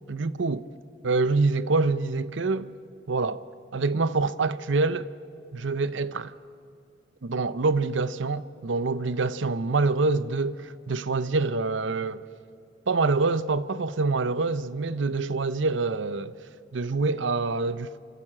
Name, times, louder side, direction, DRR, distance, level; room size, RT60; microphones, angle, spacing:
voice 1, 0.1-0.7 1.0-2.7 3.1-3.4 3.7-5.1 5.5-6.3 7.2-12.2 12.9-16.3 16.7-18.0, right 3 dB, 75° right, 0.6 m, -26 dB
27.0 x 14.5 x 7.5 m
head